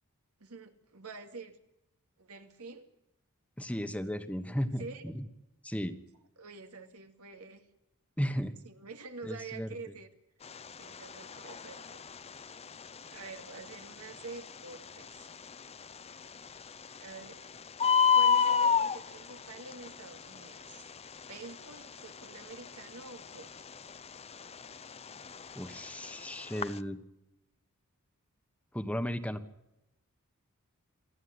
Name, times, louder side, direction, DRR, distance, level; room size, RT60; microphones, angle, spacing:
voice 1, 0.4-1.6 2.2-2.9 4.8-5.1 6.4-7.7 8.6-10.1 10.8-12.0 13.1-15.4 17.0-17.4 18.1-20.9 21.3-23.5, right 4 dB, 90° right, 7 dB, 2.3 m, -47 dB
voice 2, 3.6-5.2 5.6-6.0 8.2-8.5 9.2-9.7 25.5-27.0 28.7-29.4, equal, 5° left, 10 dB, 1.2 m, -35 dB
Bird, 10.4-26.8, left 7 dB, 30° left, 0.6 m, -32 dB
27.5 x 10.5 x 9.6 m, 0.87 s
head